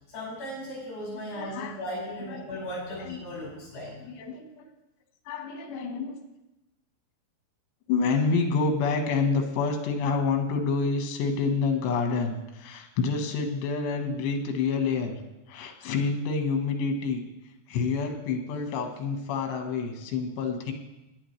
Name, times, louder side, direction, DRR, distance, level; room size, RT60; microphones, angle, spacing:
voice 1, 0.1-4.1, equal, 55° left, -7 dB, 7.0 m, -37 dB
voice 2, 1.3-1.8 2.3-2.4 3.1-3.2 4.1-4.7 5.3-6.2 7.9-15.2 15.5-17.2 17.7-20.7, left 4 dB, 85° left, 4 dB, 3.5 m, -28 dB
17.0 x 10.0 x 3.2 m, 0.96 s
omnidirectional pair, 4.9 m